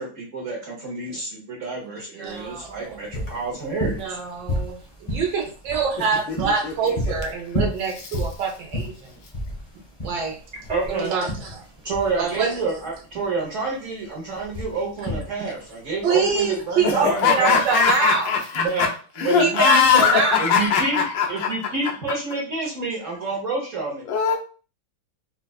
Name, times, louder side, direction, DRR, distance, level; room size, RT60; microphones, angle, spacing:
voice 1, 0.0-4.2 10.7-11.1 11.8-17.6 18.5-18.9 19.2-19.8 20.4-21.0 21.3-24.0, right 3 dB, 55° right, -2 dB, 1.0 m, -28 dB
voice 2, 2.1-2.7 3.9-9.1 10.0-10.4 10.9-11.6 12.2-12.5 15.4-15.5 16.0-18.3 19.4-20.4, right 5 dB, 70° right, 1 dB, 1.4 m, -25 dB
sound 1, 2.3-17.9, equal, 25° left, 0.6 m, -32 dB
voice 3, 6.6-7.1 8.0-8.2 16.8-18.9 19.2-21.5 24.0-24.3, left 6 dB, 80° left, 1 dB, 1.5 m, -21 dB
4.3 x 2.4 x 2.3 m, 0.37 s
omnidirectional pair, 2.1 m